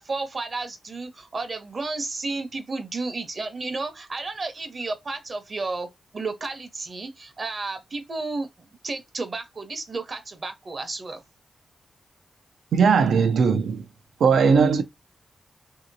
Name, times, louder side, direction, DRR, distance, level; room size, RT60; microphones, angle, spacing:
voice 1, 0.0-11.2, right 3 dB, 45° right, 0.8 m, -32 dB
voice 2, 12.7-13.8 14.2-14.8, right 5 dB, 85° right, 0.5 m, -18 dB
2.9 x 2.8 x 2.6 m
cardioid pair, 70°, 0 cm